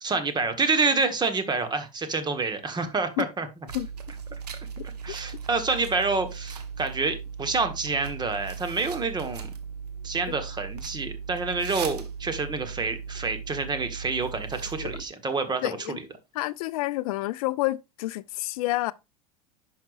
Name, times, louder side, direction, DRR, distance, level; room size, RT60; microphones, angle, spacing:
voice 1, 0.0-3.5 5.0-9.5 10.0-16.0, right 4 dB, 20° right, 1.5 m, -28 dB
sound 1, 3.7-15.1, right 6 dB, 90° right, 1.2 m, -38 dB
voice 2, 15.6-16.0 16.3-18.9, left 18 dB, 65° left, 0.4 m, -28 dB
10.5 x 5.7 x 2.5 m
hypercardioid pair, 85°, 20 cm